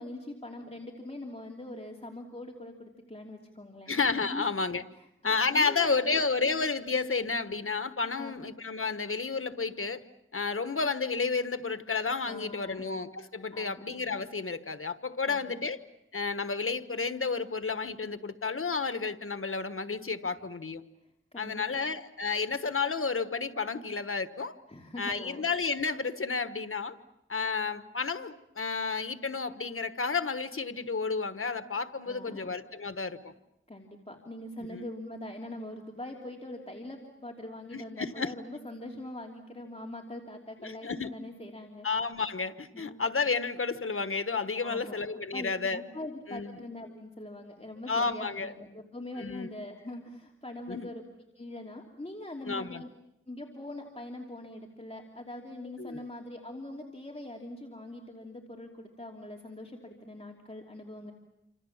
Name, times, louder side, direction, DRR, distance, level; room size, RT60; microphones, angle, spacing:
voice 1, 0.0-3.9 4.3-4.5 5.2-6.1 8.2-8.4 12.3-12.9 13.5-13.8 15.3-15.5 21.3-21.8 24.7-25.4 32.0-32.5 33.7-41.9 42.7-43.0 44.6-45.0 45.3-52.9 53.3-61.1, left 1 dB, 30° left, 1 dB, 3.0 m, -43 dB
voice 2, 3.9-4.8 5.2-10.0 10.3-15.8 16.1-20.8 21.4-24.5 25.0-27.0 27.3-33.3 34.7-34.8 37.7-38.3 40.6-41.1 41.8-45.8 46.3-46.6 47.9-48.5 49.2-49.5 50.7-50.9 52.4-52.8 55.8-56.0, left 4 dB, 85° left, 11 dB, 1.3 m, -31 dB
28.0 x 27.0 x 7.3 m, 0.84 s
wide cardioid pair, 50°, 21 cm